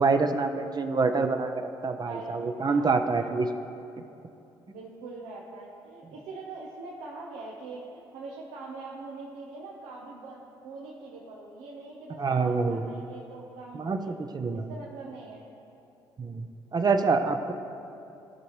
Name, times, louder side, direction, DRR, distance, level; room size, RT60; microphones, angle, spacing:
voice 1, 0.0-1.5 1.8-3.5 4.7-4.8 12.2-12.9 13.7-14.7 16.2-16.5 16.7-17.5, right 4 dB, 35° right, 7 dB, 0.7 m, -26 dB
voice 2, 2.0-2.4 2.6-3.4 4.7-14.1 14.5-15.4, right 3 dB, 80° right, -3 dB, 1.0 m, -43 dB
15.5 x 5.9 x 3.2 m, 2.8 s
hypercardioid pair, 55°, 11 cm